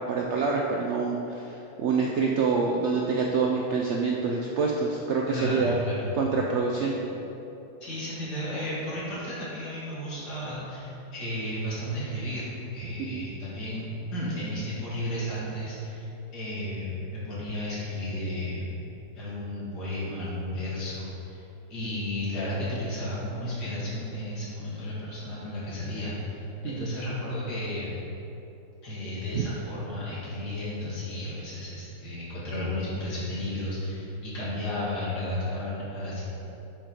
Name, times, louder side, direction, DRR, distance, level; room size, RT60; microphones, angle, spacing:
voice 1, 0.1-5.8 6.2-6.9 13.0-13.3 26.6-26.9 29.3-29.4, right 4 dB, 80° right, -1 dB, 0.6 m, -26 dB
voice 2, 5.3-6.1 6.9-7.0 7.8-18.7 19.1-21.4 21.7-27.9 28.8-36.2, left 1 dB, 90° left, -9 dB, 2.3 m, -33 dB
6.1 x 4.4 x 5.0 m, 3.0 s
omnidirectional pair, 1.7 m